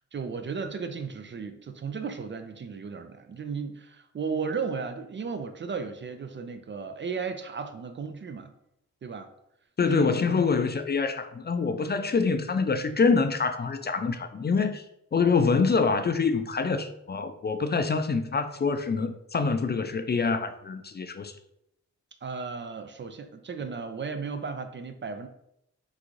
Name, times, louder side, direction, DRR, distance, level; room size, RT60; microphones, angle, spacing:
voice 1, 0.1-8.5 9.0-9.3 9.8-10.1 15.4-15.7 22.2-25.3, right 5 dB, 40° right, 0.4 m, -35 dB
voice 2, 9.8-14.9 15.1-21.4, left 4 dB, 35° left, 0.4 m, -25 dB
3.7 x 2.4 x 3.0 m
cardioid pair, 45°, 30 cm